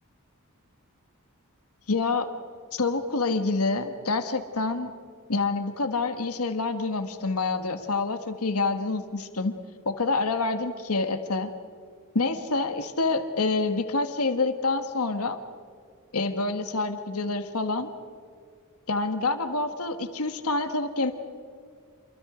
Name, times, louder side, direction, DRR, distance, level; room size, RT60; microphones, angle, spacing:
voice 1, 1.9-2.3 2.7-4.9 5.3-9.6 9.8-11.5 12.1-15.4 16.1-17.9 18.9-21.1, left 3 dB, 75° left, 8 dB, 1.4 m, -27 dB
28.0 x 23.5 x 5.0 m, 2.1 s
head